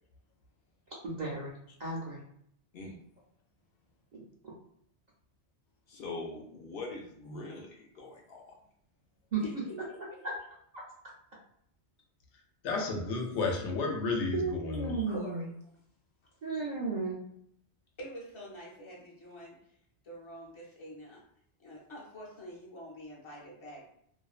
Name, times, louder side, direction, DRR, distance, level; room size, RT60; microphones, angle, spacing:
voice 1, 1.0-1.5 1.8-2.2 4.1-4.2 9.3-9.6 10.2-10.3 14.3-15.4 16.4-17.2, right 4 dB, 50° right, -5 dB, 0.6 m, -34 dB
voice 2, 5.9-8.5, left 3 dB, 65° left, 0 dB, 0.7 m, -43 dB
voice 3, 9.4-9.8 12.7-12.9 13.3-13.4 15.0-15.5 18.0-19.8 20.0-21.2 21.6-23.9, equal, 30° left, -4 dB, 0.7 m, -45 dB
voice 4, 12.6-15.0, left 3 dB, 90° left, 1 dB, 0.9 m, -32 dB
2.5 x 2.1 x 2.4 m, 0.69 s
omnidirectional pair, 1.2 m